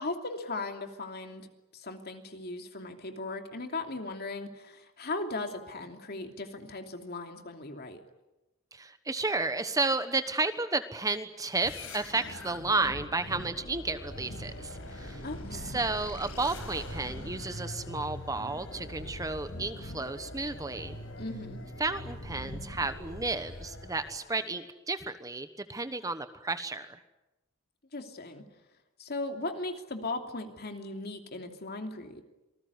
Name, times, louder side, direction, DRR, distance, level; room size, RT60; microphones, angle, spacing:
voice 1, 0.0-8.0 15.2-15.8 21.2-21.6 27.9-28.4 29.0-32.2, left 2 dB, 50° left, 5 dB, 2.9 m, -38 dB
voice 2, 8.7-15.2 15.5-21.0 21.8-27.0, right 3 dB, 15° right, 10 dB, 1.1 m, -32 dB
sound 1, 11.6-24.2, left 1 dB, 70° left, 5.4 m, -42 dB
27.0 x 20.0 x 9.6 m, 0.99 s
head